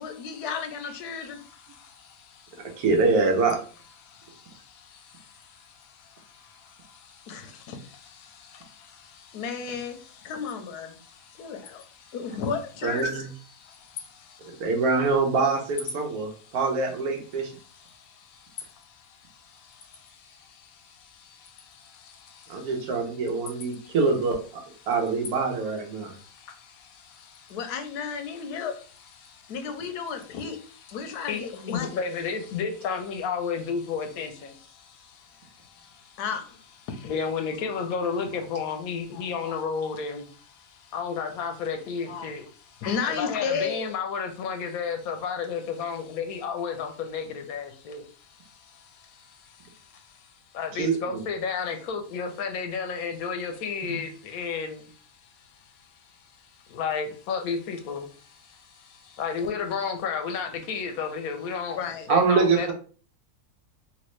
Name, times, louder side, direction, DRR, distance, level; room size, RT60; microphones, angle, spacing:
voice 1, 0.0-1.4 7.3-7.8 9.3-10.0 10.2-11.0 11.4-11.8 12.1-13.1 27.5-28.7 29.5-30.6 30.9-31.9 36.2-36.5 36.9-37.1 37.9-38.0 38.3-38.4 39.1-39.5 42.1-42.3 42.8-43.8 61.7-62.1, left 6 dB, 85° left, 1.2 m, -33 dB
voice 2, 1.3-2.8 4.0-10.3 10.9-12.2 13.4-14.7 16.2-16.6 17.3-23.2 23.5-24.0 24.8-24.9 25.9-27.6 28.3-28.7 29.2-29.6 30.9-36.2 37.0-62.7, left 6 dB, 70° left, 1.0 m, -35 dB
voice 3, 2.6-3.6 12.8-13.3 14.4-17.5 22.5-26.1 50.8-51.2 53.8-54.0 62.1-62.7, right 4 dB, 75° right, 1.3 m, -25 dB
3.1 x 2.9 x 3.1 m
omnidirectional pair, 1.7 m